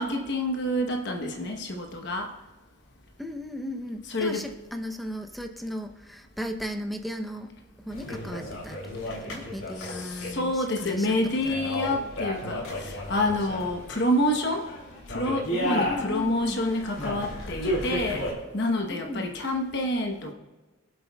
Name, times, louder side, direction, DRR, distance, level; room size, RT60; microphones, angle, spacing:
voice 1, 0.0-2.3 4.1-4.5 9.8-14.7 15.1-20.3, left 1 dB, 55° left, 3 dB, 1.1 m, -28 dB
voice 2, 3.2-7.5 7.9-11.2 11.4-11.8 15.6-16.6 18.9-19.4, equal, ahead, 5 dB, 0.7 m, -36 dB
sound 1, 7.9-18.3, left 1 dB, 80° left, 3.1 m, -33 dB
23.5 x 7.9 x 2.3 m, 1.2 s
head